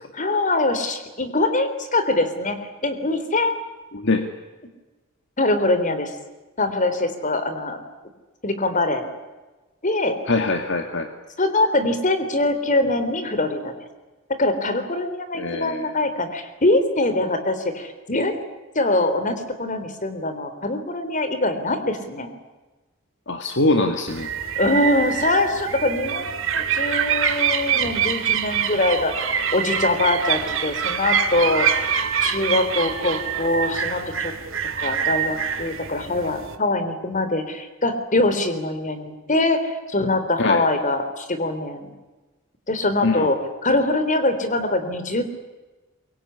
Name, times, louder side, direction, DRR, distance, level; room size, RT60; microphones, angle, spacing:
voice 1, 0.1-2.6 2.8-3.5 5.4-6.1 6.6-7.8 8.4-9.1 9.8-10.2 11.4-13.7 14.4-18.4 18.8-22.3 24.6-29.1 29.5-31.7 32.2-34.3 34.8-41.9 42.7-45.2, left 2 dB, 40° left, 9 dB, 3.6 m, -23 dB
voice 2, 3.9-4.3 10.3-11.1 15.3-15.9 23.3-24.3 40.4-40.6 43.0-43.3, left 2 dB, 60° left, 6 dB, 2.1 m, -22 dB
sound 1, 24.1-36.6, right 7 dB, 65° right, 2.5 m, -25 dB
24.0 x 22.5 x 9.9 m, 1.2 s
head